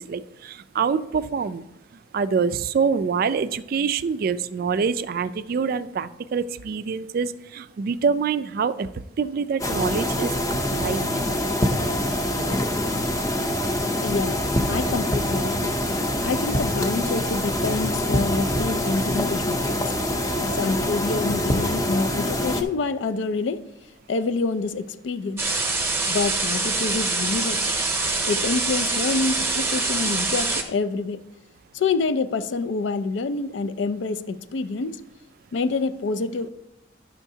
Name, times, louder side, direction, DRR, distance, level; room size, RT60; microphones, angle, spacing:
voice 1, 0.0-1.6 2.1-8.9 9.2-10.3 10.7-11.1, right 5 dB, 50° right, 0.3 m, -25 dB
sound 1, 9.6-22.6, left 1 dB, 20° left, 0.6 m, -25 dB
voice 2, 14.0-14.4 14.7-15.8 16.2-19.8 20.5-23.7 24.1-25.6 26.1-27.7 28.3-31.2 31.7-35.0 35.5-36.5, left 4 dB, 75° left, 0.4 m, -27 dB
sound 2, 25.4-30.6, right 3 dB, 15° right, 0.8 m, -25 dB
10.5 x 6.3 x 2.7 m
head